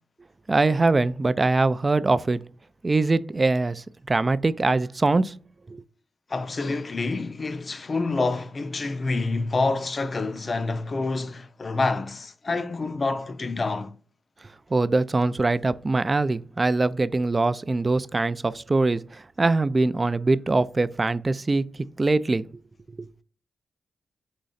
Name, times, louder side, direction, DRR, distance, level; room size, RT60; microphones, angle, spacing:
voice 1, 0.5-2.4 2.8-5.4 5.7-5.8 14.7-21.6 22.0-22.4 23.0-23.1, right 3 dB, 35° right, 0.3 m, -23 dB
voice 2, 6.3-13.9, left 3 dB, 45° left, 0.5 m, -27 dB
3.8 x 3.2 x 4.0 m
supercardioid pair, 45°, 0 cm